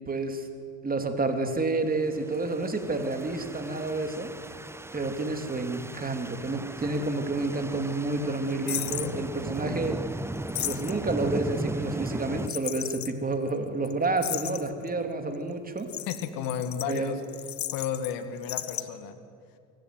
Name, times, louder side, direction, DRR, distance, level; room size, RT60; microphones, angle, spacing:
voice 1, 0.1-0.5 0.8-4.3 4.9-10.0 10.6-15.9 16.9-17.1, right 2 dB, 25° right, 6 dB, 3.1 m, -29 dB
sound 1, 2.1-12.5, right 2 dB, 5° right, 0.8 m, -37 dB
sound 2, 8.7-9.1 10.4-11.1 12.5-13.1 13.5-13.6 13.8-13.9 14.2-14.9 15.8-18.1 18.4-18.8, left 13 dB, 50° left, 1.3 m, -34 dB
voice 2, 16.1-17.2 17.7-19.2, left 8 dB, 70° left, 9 dB, 2.1 m, -33 dB
24.5 x 15.5 x 9.4 m, 2.4 s
hypercardioid pair, 75°, 36 cm